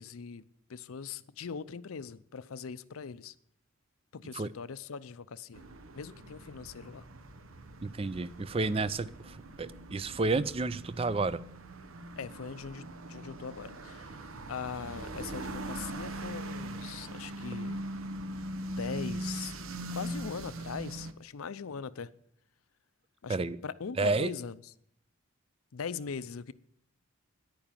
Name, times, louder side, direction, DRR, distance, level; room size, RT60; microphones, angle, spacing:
voice 1, 0.0-3.3 4.1-5.6 5.9-7.1 12.2-17.8 18.7-19.5 19.9-22.1 23.2-23.4 23.6-24.6 25.7-26.5, left 6 dB, 85° left, 0.5 m, -41 dB
sound 1, 5.5-21.1, right 1 dB, 80° right, 0.9 m, -41 dB
voice 2, 7.8-11.4 23.3-23.6 24.0-24.3, right 3 dB, 25° right, 0.4 m, -31 dB
11.0 x 9.0 x 7.3 m
head